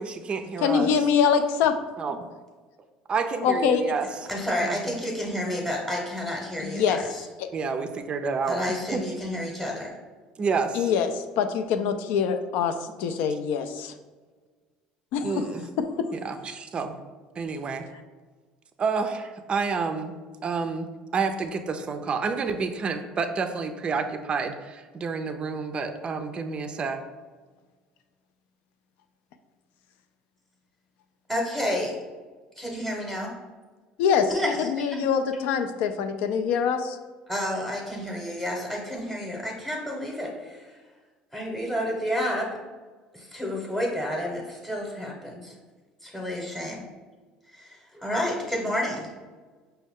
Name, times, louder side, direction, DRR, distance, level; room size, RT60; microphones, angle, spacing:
voice 1, 0.0-1.1 2.0-2.2 3.1-4.3 4.6-4.8 7.5-8.6 8.9-9.0 10.4-10.9 15.2-15.7 16.1-16.9 17.4-17.8 18.8-20.1 20.4-20.9 21.1-27.0, right 5 dB, 35° right, 7 dB, 0.4 m, -29 dB
voice 2, 0.6-1.7 3.4-3.8 6.6-7.0 7.4-7.5 10.7-13.9 15.1-15.3 34.0-34.3 34.7-37.0, left 7 dB, 75° left, 8 dB, 0.4 m, -24 dB
voice 3, 4.3-7.3 8.5-9.9 31.3-32.0 32.6-33.3 34.3-35.0 37.3-40.8 41.3-42.5 43.1-45.6 46.0-46.8 47.5-49.1, equal, ahead, -3 dB, 0.8 m, -30 dB
5.2 x 2.2 x 3.5 m, 1.4 s
supercardioid pair, 90°, 3 cm